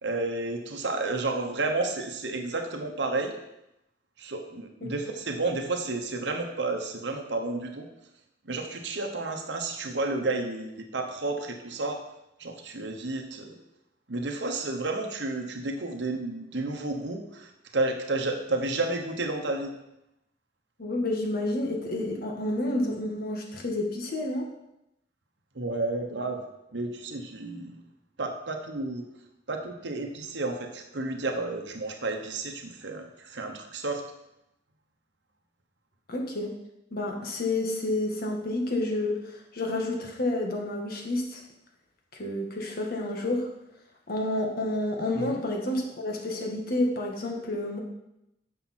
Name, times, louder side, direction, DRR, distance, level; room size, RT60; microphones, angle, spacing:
voice 1, 0.0-3.4 4.2-7.9 8.4-12.0 12.4-13.6 14.1-19.7 25.5-26.4 26.7-27.8 28.2-29.1 29.5-34.0 45.1-45.4, right 2 dB, 70° right, 4 dB, 1.1 m, -31 dB
voice 2, 20.8-24.5 36.1-36.5 36.9-41.4 42.1-43.5 44.1-47.8, left 1 dB, 55° left, 0 dB, 1.7 m, -29 dB
10.5 x 6.8 x 4.4 m, 0.86 s
head